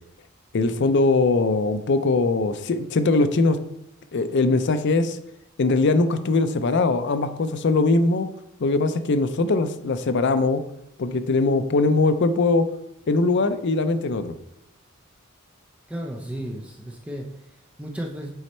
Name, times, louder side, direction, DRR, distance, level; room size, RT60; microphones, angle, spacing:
voice 1, 0.5-3.6 4.1-5.2 5.6-8.3 8.6-10.6 11.0-12.7 13.1-14.3, left 3 dB, 55° left, 10 dB, 0.5 m, -21 dB
voice 2, 15.9-18.3, equal, 5° right, -1 dB, 0.6 m, -34 dB
8.0 x 4.3 x 4.3 m, 0.80 s
head